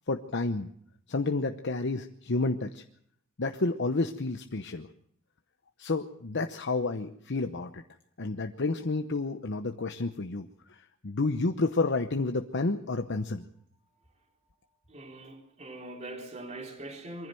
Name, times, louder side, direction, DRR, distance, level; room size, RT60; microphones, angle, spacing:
voice 1, 0.1-0.7 1.1-2.8 3.4-4.9 5.8-7.8 8.2-13.4, left 3 dB, 60° left, 0.9 m, -30 dB
voice 2, 14.9-17.3, right 1 dB, 35° right, 3.7 m, -42 dB
23.5 x 15.0 x 7.7 m
head